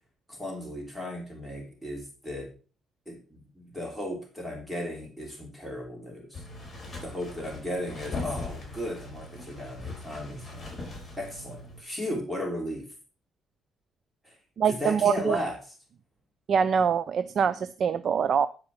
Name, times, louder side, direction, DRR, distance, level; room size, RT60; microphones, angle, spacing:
voice 1, 0.3-2.5 3.1-6.4 7.0-10.9 11.2-12.9 14.2-14.4 14.6-15.7, left 1 dB, 5° right, 0 dB, 3.1 m, -35 dB
sound 1, 6.3-11.8, left 2 dB, 35° left, 5.1 m, -40 dB
voice 2, 14.6-15.4 16.5-18.5, right 7 dB, 60° right, 11 dB, 0.5 m, -24 dB
10.5 x 5.1 x 5.8 m, 0.37 s
cardioid pair, 90°, 0 cm